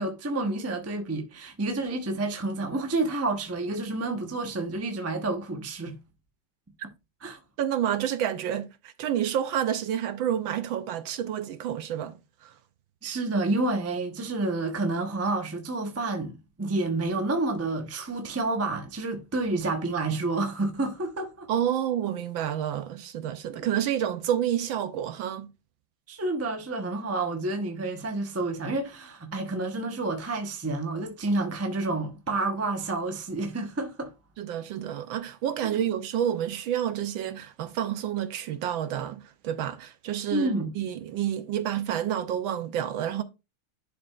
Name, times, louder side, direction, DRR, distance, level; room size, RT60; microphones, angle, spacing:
voice 1, 0.0-6.0 7.2-7.4 13.0-21.5 26.1-34.1 40.3-40.7, right 2 dB, 20° right, 0.4 m, -29 dB
voice 2, 7.6-12.2 12.4-12.5 21.5-25.5 34.4-40.5 40.8-43.2, right 10 dB, 70° right, 1.3 m, -29 dB
11.0 x 4.7 x 2.5 m
omnidirectional pair, 2.4 m